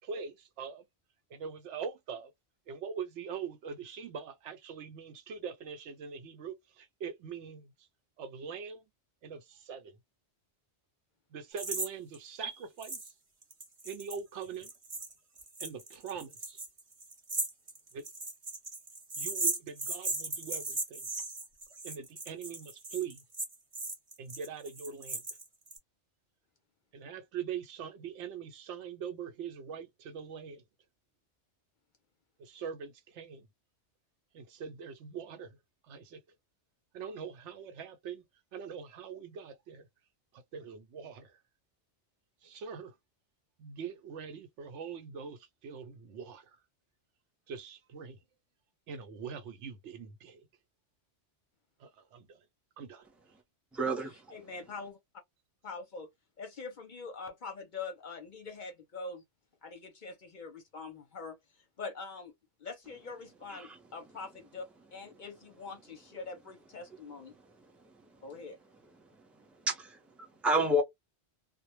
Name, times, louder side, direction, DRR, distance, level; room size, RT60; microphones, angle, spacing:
voice 1, 0.0-0.9 1.3-2.3 2.7-7.7 8.2-8.8 9.2-10.0 11.3-13.1 13.8-14.7 15.6-16.6 17.9-18.0 19.2-21.1 21.8-23.2 24.2-25.2 26.9-30.6 32.4-33.5 34.3-35.6 35.8-36.2 36.9-38.2 38.5-39.9 40.3-41.4 42.4-42.9 43.6-46.6 47.5-48.2 48.9-50.4 51.8-52.4 52.8-53.1, right 6 dB, 85° right, 0.9 m, -42 dB
sound 1, 11.6-11.9 12.1-12.2 12.8-13.1 13.4-25.8, right 2 dB, 35° right, 0.8 m, -37 dB
voice 2, 53.7-54.3 63.5-63.8 67.8-68.1 69.6-70.8, equal, ahead, 0.4 m, -30 dB
voice 3, 54.3-55.0 55.6-56.1 56.4-59.2 59.6-62.3 62.6-67.3 68.2-68.6, left 4 dB, 50° left, 0.6 m, -44 dB
2.1 x 2.1 x 2.9 m
omnidirectional pair, 1.2 m